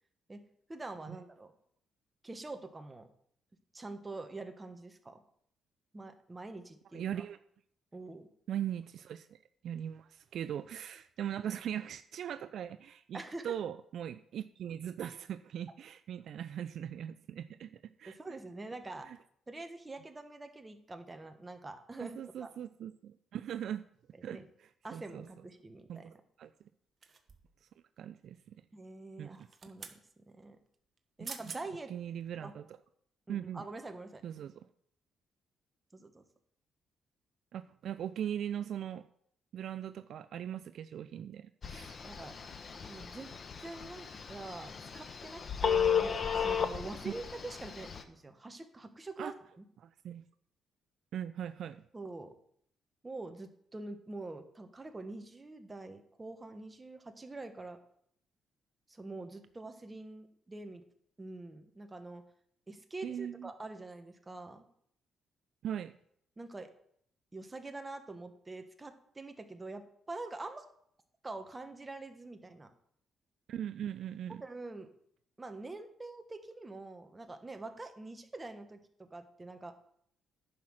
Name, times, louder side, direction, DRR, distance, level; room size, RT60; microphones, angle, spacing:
voice 1, 0.7-1.5 2.2-3.1 3.7-5.2 5.9-7.0 7.9-8.3 13.1-13.5 18.1-19.1 19.5-22.5 24.3-24.5 24.8-26.2 28.7-29.9 30.3-30.6 31.2-31.9 32.4-32.5 33.3-34.2 35.9-36.2 42.0-42.3 42.9-43.3 43.6-49.6 51.9-52.3 53.0-57.8 58.9-60.8 61.2-62.2 62.7-64.6 66.4-66.7 67.3-70.6 71.2-72.7 74.4-74.9 75.4-79.7, right 2 dB, 20° right, 7 dB, 1.3 m, -45 dB
voice 2, 6.9-7.4 8.5-17.7 18.0-18.2 19.1-19.2 22.0-23.8 24.2-24.4 24.9-25.2 25.9-26.5 28.0-28.5 29.2-29.5 31.9-32.7 33.3-33.6 34.2-34.7 37.5-39.0 39.5-42.0 47.0-47.1 49.2-49.3 49.8-50.2 51.1-51.8 63.0-63.5 65.6-65.9 73.5-74.4, right 10 dB, 70° right, 12 dB, 0.4 m, -40 dB
sound 1, 27.0-27.6 29.3-30.0 31.0-31.1 31.2-31.6 32.2-32.3, right 5 dB, 40° right, 1.2 m, -46 dB
Telephone, 41.6-48.0, left 7 dB, 45° left, 1.0 m, -34 dB
10.0 x 5.7 x 6.4 m, 0.68 s
cardioid pair, 90°, 0 cm